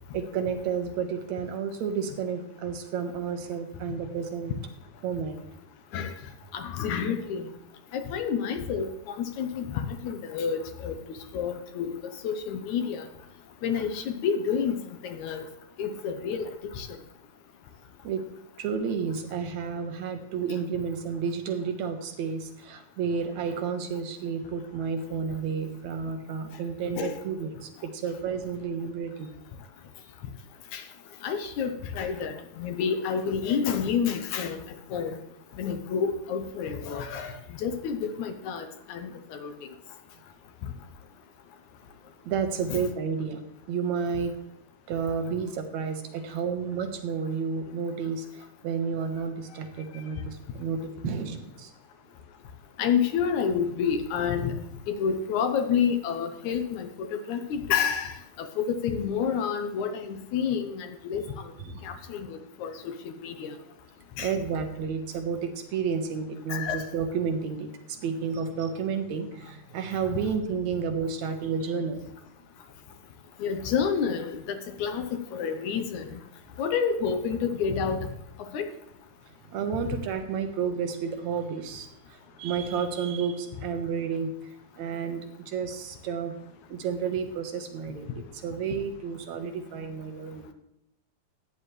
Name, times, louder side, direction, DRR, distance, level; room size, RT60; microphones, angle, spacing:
voice 1, 0.1-4.5 5.0-5.4 18.0-18.3 18.6-29.3 42.2-43.4 43.7-44.3 44.9-51.7 61.6-61.9 64.2-72.0 79.5-86.3 86.7-90.5, right 6 dB, 75° right, 7 dB, 2.4 m, -31 dB
voice 2, 6.5-7.5 7.9-10.9 11.3-12.0 12.2-13.1 13.6-15.4 15.8-16.5 16.8-16.9 27.0-27.1 30.7-30.8 31.2-34.6 34.9-35.2 35.6-37.3 37.6-39.5 42.7-42.8 52.8-54.5 54.9-61.2 61.8-63.5 64.2-64.3 66.5-66.9 73.4-76.1 76.6-78.1 78.5-78.7, left 7 dB, 80° left, 7 dB, 2.3 m, -29 dB
14.5 x 9.5 x 3.2 m, 0.82 s
omnidirectional pair, 3.4 m